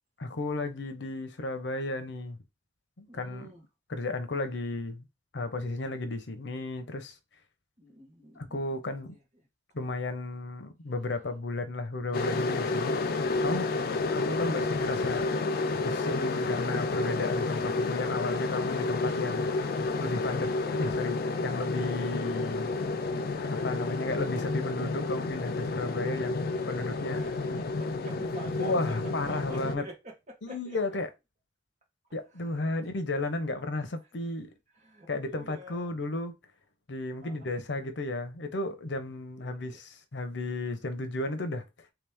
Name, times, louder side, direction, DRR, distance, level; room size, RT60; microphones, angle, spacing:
voice 1, 0.2-2.4 3.0-3.5 3.9-5.1 5.3-7.1 8.4-9.1 9.7-13.0 13.4-13.7 14.1-15.3 15.8-19.5 20.0-22.7 23.5-27.2 28.5-29.8 30.4-31.1 32.1-34.5 35.1-36.4 36.9-41.6, left 2 dB, 80° left, 0.7 m, -33 dB
voice 2, 3.1-3.7 7.8-8.8 9.0-9.2 27.1-30.8 32.3-32.7 34.7-36.0 37.2-37.5 39.4-39.8, right 1 dB, 40° right, 1.6 m, -48 dB
sound 1, 12.1-29.8, left 3 dB, 55° left, 0.4 m, -30 dB
3.2 x 2.9 x 3.5 m
head